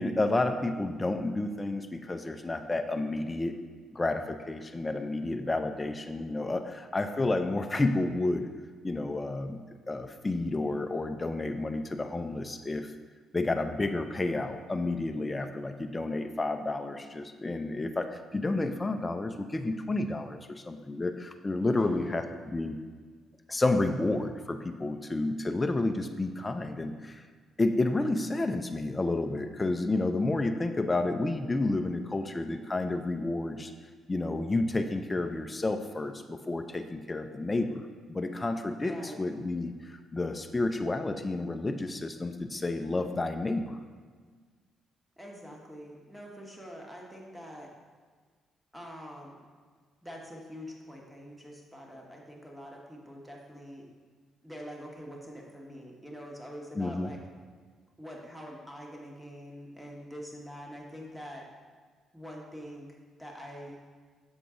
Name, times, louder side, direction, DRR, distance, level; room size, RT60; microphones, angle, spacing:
voice 1, 0.0-3.6 3.9-8.5 8.8-12.9 13.3-22.8 23.5-27.2 27.6-33.7 34.1-43.8 56.8-57.1, left 2 dB, 20° left, 6 dB, 0.4 m, -30 dB
voice 2, 21.8-22.3 38.8-39.2 45.2-47.7 48.7-49.4 50.0-53.9 54.4-57.2 58.0-61.4 62.1-63.8, equal, 5° right, -1 dB, 1.2 m, -45 dB
6.9 x 3.8 x 3.7 m, 1.5 s
cardioid pair, 90°, 0 cm